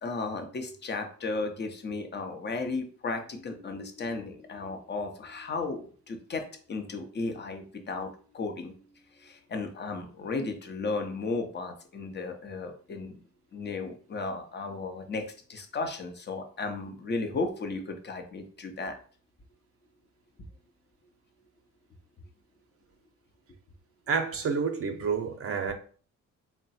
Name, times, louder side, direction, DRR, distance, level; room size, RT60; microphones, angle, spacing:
voice 1, 0.0-8.8 9.1-13.2 13.5-19.0, left 3 dB, 35° left, 6 dB, 0.8 m, -35 dB
voice 2, 24.1-25.7, right 5 dB, 50° right, 5 dB, 0.6 m, -29 dB
3.7 x 2.2 x 4.1 m, 0.43 s
cardioid pair, 90°, 30 cm